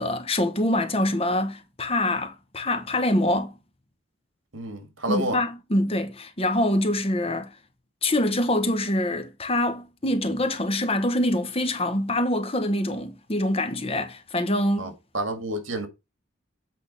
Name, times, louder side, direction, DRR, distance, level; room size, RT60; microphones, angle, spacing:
voice 1, 0.0-3.5 5.1-7.5 8.0-14.9, left 1 dB, 30° left, 1.1 m, -25 dB
voice 2, 4.5-5.4 14.8-15.9, right 1 dB, 75° right, 1.9 m, -29 dB
8.4 x 3.7 x 5.4 m
head